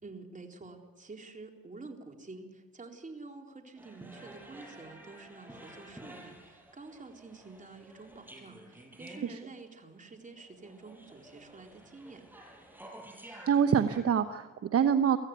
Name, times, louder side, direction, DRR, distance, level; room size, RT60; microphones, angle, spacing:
voice 1, 0.0-12.2, right 3 dB, 25° right, 3 dB, 4.0 m, -49 dB
sound 1, 3.8-14.0, right 1 dB, 5° right, 6.0 m, -51 dB
voice 2, 13.5-15.2, right 8 dB, 50° right, 9 dB, 1.1 m, -26 dB
24.0 x 15.5 x 9.6 m, 1.5 s
cardioid pair, 90°, 30 cm